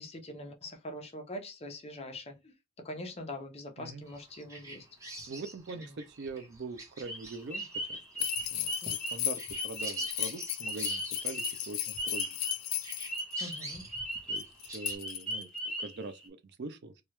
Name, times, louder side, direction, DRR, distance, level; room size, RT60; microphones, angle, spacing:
voice 1, 0.0-2.5 2.8-4.9 8.8-8.9 13.4-13.8, left 1 dB, 30° left, 0.7 m, -43 dB
Bird vocalization bird call bird song, 4.1-12.5 12.8-15.0, right 2 dB, 15° right, 0.9 m, -47 dB
voice 2, 5.3-12.4 14.3-16.9, right 3 dB, 55° right, 0.5 m, -43 dB
sound 1, 7.0-12.7 13.1-16.3, right 1 dB, 5° left, 1.1 m, -38 dB
sound 2, 8.2-13.6 14.4-15.6, left 13 dB, 75° left, 0.4 m, -36 dB
3.0 x 2.3 x 3.1 m
head